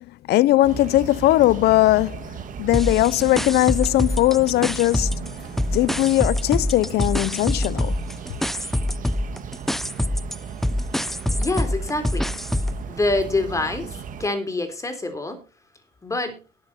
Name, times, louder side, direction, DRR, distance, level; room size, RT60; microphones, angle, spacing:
voice 1, 0.0-2.3 2.6-5.4 5.7-8.0, left 16 dB, 70° left, 0.5 m, -19 dB
sound 1, 0.6-14.3, right 6 dB, 50° right, 1.7 m, -36 dB
sound 2, 2.7-5.3 5.6-12.8, left 1 dB, ahead, 0.5 m, -25 dB
voice 2, 11.4-12.3 12.9-15.4 16.0-16.4, left 2 dB, 20° left, 3.4 m, -26 dB
18.5 x 6.9 x 4.2 m
cardioid pair, 110°, 17 cm